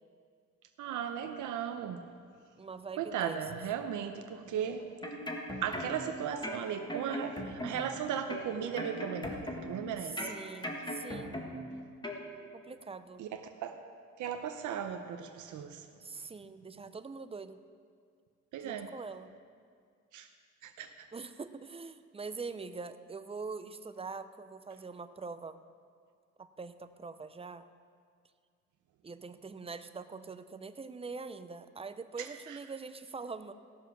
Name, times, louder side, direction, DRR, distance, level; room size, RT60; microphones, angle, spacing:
voice 1, 0.8-2.0 3.0-4.9 5.6-10.2 13.2-13.8 14.2-15.9 18.5-18.9 20.1-20.3 20.6-20.9 32.2-32.6, right 8 dB, 80° right, 6 dB, 0.8 m, -36 dB
voice 2, 2.6-3.4 10.1-11.4 12.5-13.3 16.0-17.6 18.6-19.3 21.1-25.6 26.4-27.7 29.0-33.5, right 4 dB, 20° right, 12 dB, 0.6 m, -43 dB
sound 1, 4.8-6.1 6.4-8.0 8.3-9.8 10.2-11.7 12.0-12.2, equal, 15° left, 1.8 m, -39 dB
15.5 x 7.0 x 6.0 m, 2.1 s
cardioid pair, 90°, 30 cm